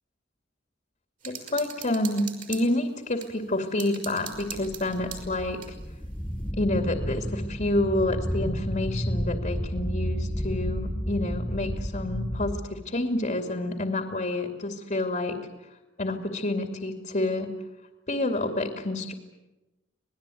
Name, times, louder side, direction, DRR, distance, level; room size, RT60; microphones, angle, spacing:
voice 1, 1.2-5.6 6.6-15.3 16.0-17.5 18.1-19.1, left 1 dB, 40° left, 4 dB, 2.5 m, -28 dB
sound 1, 1.2-3.3 3.8-5.7, right 8 dB, 45° right, 5.5 m, -41 dB
stone sample spear, 4.3-12.6, equal, 10° left, 1.1 m, -31 dB
27.0 x 20.0 x 9.3 m, 1.0 s
head